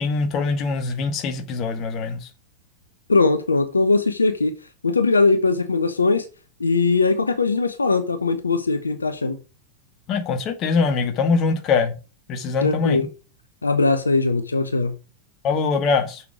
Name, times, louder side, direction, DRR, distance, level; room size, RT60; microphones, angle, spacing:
voice 1, 0.0-2.2 10.1-11.9 12.3-13.1 15.4-16.2, left 4 dB, 35° left, 1.7 m, -23 dB
voice 2, 3.1-4.5 4.8-6.3 6.6-9.4 12.6-13.1 13.6-15.0, left 3 dB, 75° left, 0.8 m, -20 dB
6.8 x 6.5 x 5.0 m
figure-of-eight pair, 90°, 0 cm